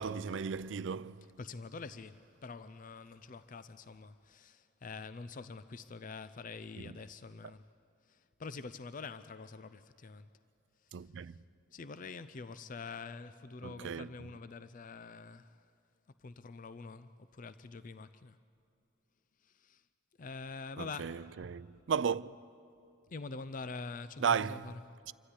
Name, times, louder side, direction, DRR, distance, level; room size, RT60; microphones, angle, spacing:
voice 1, 0.0-1.3 10.9-11.3 13.6-14.1 20.8-22.3 24.2-24.6, right 6 dB, 75° right, 0.4 m, -35 dB
voice 2, 1.2-7.7 8.1-10.3 11.0-11.4 11.7-15.7 16.2-18.4 19.4-19.8 20.2-21.3 23.1-24.9, left 4 dB, 45° left, 0.5 m, -46 dB
26.5 x 13.0 x 9.8 m
head